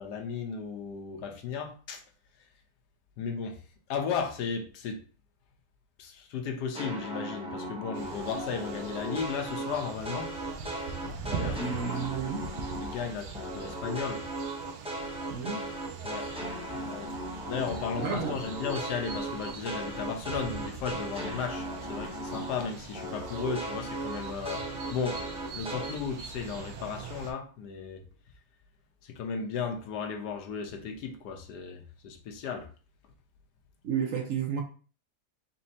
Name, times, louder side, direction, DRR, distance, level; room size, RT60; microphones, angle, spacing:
voice 1, 0.0-2.0 3.2-3.6 3.9-5.0 6.0-10.3 11.0-11.6 12.8-14.2 16.0-16.4 16.8-17.1 17.5-25.2 25.5-28.0 29.0-32.7, left 6 dB, 80° left, 1.3 m, -35 dB
sound 1, 6.7-13.1 13.3-22.7 22.9-26.0, right 1 dB, 5° right, 0.6 m, -37 dB
sound 2, 7.9-27.3, right 5 dB, 80° right, 1.3 m, -42 dB
voice 2, 11.5-12.5 15.3-15.6 16.7-16.8 18.0-18.4 33.8-34.6, right 6 dB, 60° right, 0.9 m, -32 dB
4.2 x 3.6 x 2.7 m
omnidirectional pair, 1.8 m